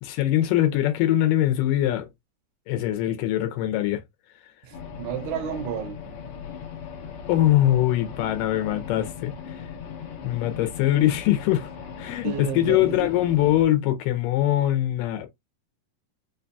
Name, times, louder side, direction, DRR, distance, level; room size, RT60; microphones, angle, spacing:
voice 1, 0.0-2.1 2.7-4.0 7.3-9.6 10.2-11.7 12.0-15.3, left 13 dB, 90° left, 2.4 m, -22 dB
voice 2, 4.6-6.0 12.2-13.1, right 8 dB, 80° right, 1.8 m, -32 dB
sound 1, 4.7-13.6, left 7 dB, 65° left, 1.9 m, -38 dB
5.2 x 2.6 x 2.2 m
omnidirectional pair, 3.8 m